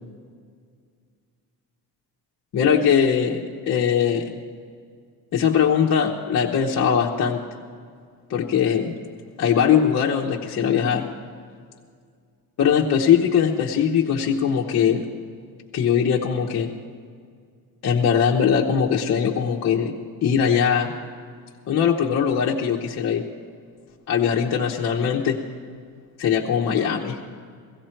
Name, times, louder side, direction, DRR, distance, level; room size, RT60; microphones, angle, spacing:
voice 1, 2.5-4.4 5.3-7.4 8.3-8.9 9.4-11.1 12.6-15.1 15.7-16.7 17.8-19.9 20.2-20.9 21.7-23.2 24.1-25.4 26.2-27.2, left 7 dB, 45° left, -2 dB, 0.9 m, -21 dB
17.0 x 15.0 x 4.4 m, 2.1 s
cardioid pair, 150°, 38 cm